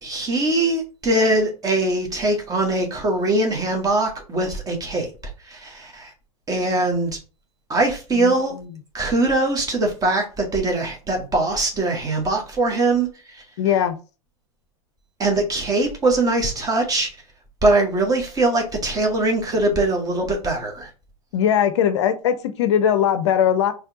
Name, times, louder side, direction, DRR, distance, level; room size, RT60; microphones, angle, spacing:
voice 1, 0.0-5.1 5.4-6.1 6.5-7.2 7.7-8.5 8.9-13.4 15.2-17.1 17.6-20.9, right 2 dB, 20° right, 1.5 m, -22 dB
voice 2, 8.2-8.7 13.6-13.9 21.3-23.7, left 9 dB, 50° left, 0.6 m, -20 dB
4.4 x 3.2 x 3.6 m
figure-of-eight pair, 95°, 19 cm